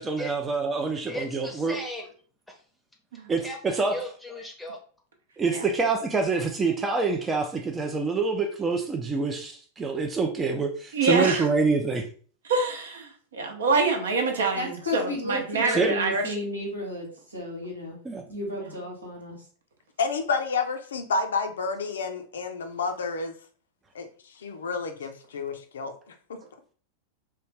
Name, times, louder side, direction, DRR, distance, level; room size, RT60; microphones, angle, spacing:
voice 1, 0.0-1.8 3.3-4.0 5.4-12.1 15.7-15.9 18.0-18.2, right 4 dB, 20° right, 4 dB, 0.4 m, -26 dB
voice 2, 1.1-2.1 2.5-2.6 3.4-4.8, equal, ahead, 1 dB, 0.7 m, -37 dB
voice 3, 10.9-11.5 12.5-16.4, right 3 dB, 65° right, 4 dB, 0.7 m, -26 dB
voice 4, 14.5-18.0 18.2-19.4, left 1 dB, 85° right, -2 dB, 1.2 m, -33 dB
voice 5, 20.0-23.3 23.9-26.1, left 4 dB, 65° left, 6 dB, 0.5 m, -30 dB
3.2 x 2.3 x 3.2 m, 0.44 s
figure-of-eight pair, 90°, 0 cm